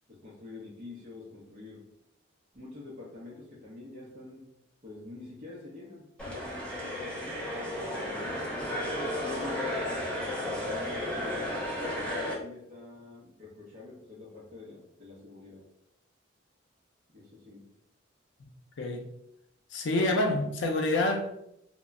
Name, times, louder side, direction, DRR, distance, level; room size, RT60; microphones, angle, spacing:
voice 1, 0.1-1.9 2.5-4.5 4.8-8.6 9.1-9.8 10.3-11.8 12.1-15.6 17.1-17.6, left 2 dB, 40° right, 0.7 m, -46 dB
sound 1, 6.2-12.3, left 1 dB, 5° left, 0.6 m, -33 dB
voice 2, 18.8-19.1 19.7-21.4, left 2 dB, 65° left, 0.5 m, -27 dB
2.2 x 2.0 x 3.5 m
head